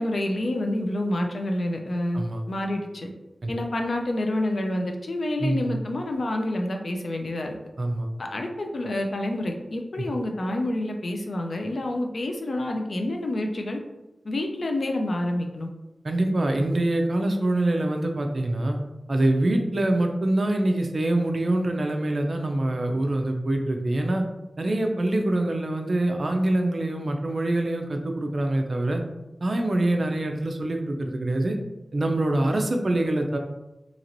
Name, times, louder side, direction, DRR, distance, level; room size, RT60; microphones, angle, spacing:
voice 1, 0.0-2.2 2.5-3.1 3.5-7.6 8.2-13.8 14.2-15.7, left 1 dB, 65° left, 3 dB, 0.4 m, -28 dB
voice 2, 5.4-5.7 7.8-8.1 16.0-18.8 19.1-24.2 24.6-29.0 29.4-31.6 31.9-33.4, right 1 dB, 50° right, 3 dB, 0.4 m, -25 dB
2.9 x 2.9 x 2.5 m, 0.98 s
wide cardioid pair, 95°, 0 cm